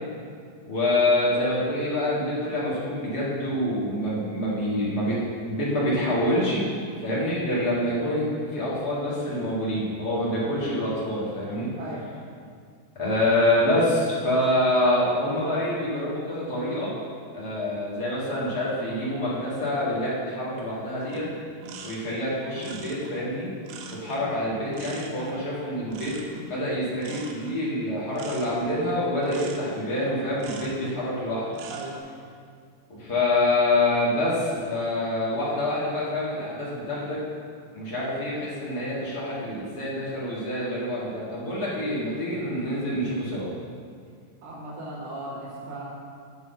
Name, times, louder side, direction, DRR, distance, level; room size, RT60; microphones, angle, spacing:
voice 1, 0.7-5.2 5.5-6.7 7.0-11.7 12.9-16.9 17.3-21.3 21.8-23.5 23.9-26.1 26.4-31.4 33.0-37.2 37.7-43.5, left 1 dB, 45° left, -7 dB, 1.3 m, -26 dB
voice 2, 11.7-12.1 31.7-32.0 44.4-45.9, right 2 dB, 60° right, -8 dB, 4.0 m, -37 dB
sound 1, 21.0-31.0 31.4-32.0, right 3 dB, 75° right, 2.4 m, -43 dB
7.8 x 5.7 x 7.0 m, 2.2 s
omnidirectional pair, 4.8 m